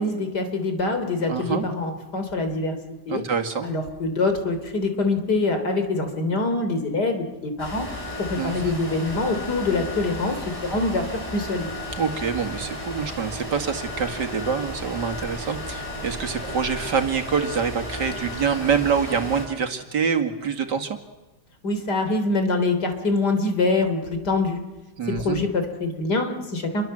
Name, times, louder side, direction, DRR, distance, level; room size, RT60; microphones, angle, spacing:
voice 1, 0.0-2.7 3.1-3.2 3.6-7.9 8.3-10.4 10.6-11.7 21.6-24.6 25.1-26.8, left 3 dB, 70° left, 7 dB, 4.1 m, -24 dB
voice 2, 1.3-1.7 3.1-3.7 8.4-8.8 11.9-21.0 25.0-25.4, right 6 dB, 80° right, 5 dB, 2.8 m, -26 dB
sound 1, 7.6-19.5, left 1 dB, 20° left, 7.5 m, -34 dB
28.0 x 23.0 x 7.7 m, 1.1 s
omnidirectional pair, 1.8 m